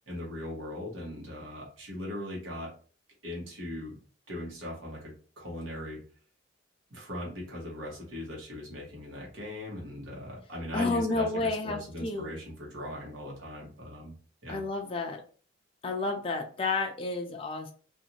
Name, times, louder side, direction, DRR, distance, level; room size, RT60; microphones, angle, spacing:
voice 1, 0.1-2.7 3.2-4.0 4.3-6.0 6.9-14.1 14.4-14.6, left 1 dB, 85° right, -3 dB, 1.1 m, -39 dB
voice 2, 10.7-12.3 14.5-15.2 15.8-17.7, left 3 dB, 30° left, 3 dB, 0.4 m, -31 dB
2.6 x 2.4 x 2.9 m, 0.40 s
head